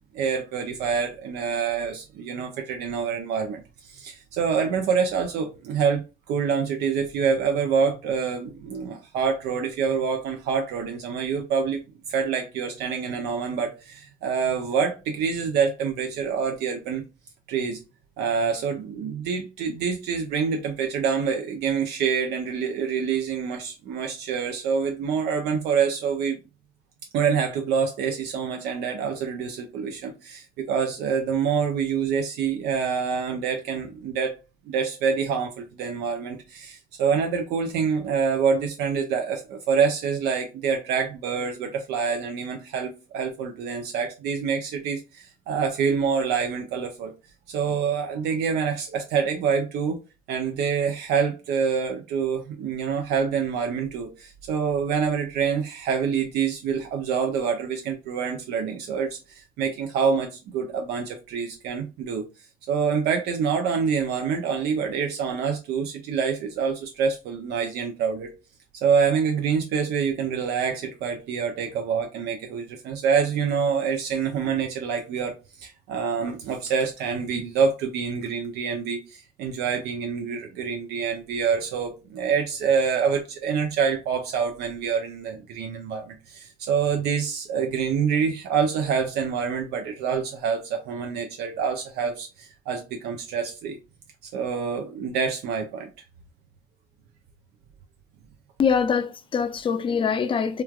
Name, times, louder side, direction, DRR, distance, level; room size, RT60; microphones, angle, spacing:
voice 1, 0.1-6.0 6.3-11.8 12.1-17.0 17.5-17.8 18.2-26.4 27.1-34.3 34.7-47.1 47.5-50.0 50.3-62.3 62.7-68.3 68.8-93.8 94.3-95.9 100.2-100.3, right 6 dB, 80° right, 0.5 m, -26 dB
voice 2, 98.6-100.6, left 6 dB, 30° left, 0.4 m, -23 dB
3.0 x 2.3 x 2.2 m
cardioid pair, 110°, 17 cm